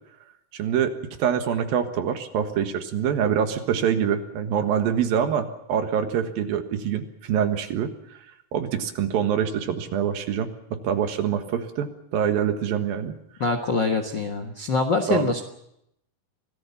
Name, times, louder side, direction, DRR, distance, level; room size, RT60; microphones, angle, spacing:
voice 1, 0.5-0.9 1.2-7.9 8.5-13.1 15.1-15.3, right 8 dB, 75° right, 7 dB, 3.3 m, -25 dB
voice 2, 13.4-15.4, left 3 dB, 60° left, 4 dB, 1.1 m, -24 dB
25.5 x 18.0 x 7.1 m, 0.79 s
omnidirectional pair, 4.2 m